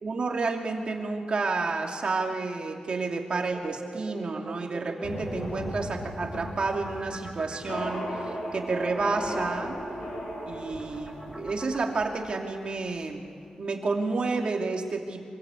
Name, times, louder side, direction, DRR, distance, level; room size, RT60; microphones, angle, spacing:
voice 1, 0.0-8.1 8.5-9.8 10.5-13.3 13.6-15.2, right 3 dB, 45° right, 1 dB, 2.7 m, -30 dB
sound 1, 3.5-12.0, right 2 dB, 15° right, 2.3 m, -42 dB
sound 2, 5.0-12.7, equal, 85° left, 7.3 m, -36 dB
25.5 x 21.5 x 8.5 m, 2.1 s
wide cardioid pair, 155°, 2 cm